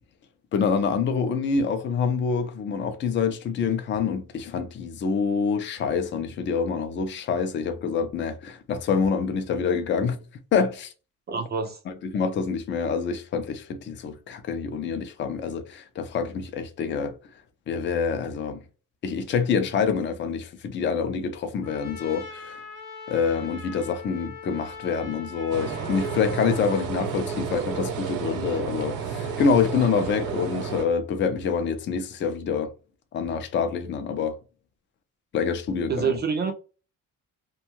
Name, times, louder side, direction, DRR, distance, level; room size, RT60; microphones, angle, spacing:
voice 1, 0.5-10.2 10.5-10.9 11.9-17.1 17.7-18.6 19.0-22.6 23.1-32.7 33.1-34.4 35.3-36.2, left 6 dB, 35° left, 0.4 m, -26 dB
voice 2, 11.3-11.8 35.9-36.5, right 6 dB, 30° right, 0.4 m, -26 dB
Trumpet, 21.6-26.9, left 4 dB, 75° left, 0.7 m, -41 dB
sound 1, 25.5-30.8, right 6 dB, 70° right, 0.9 m, -31 dB
2.6 x 2.2 x 2.9 m
cardioid pair, 170°, 33 cm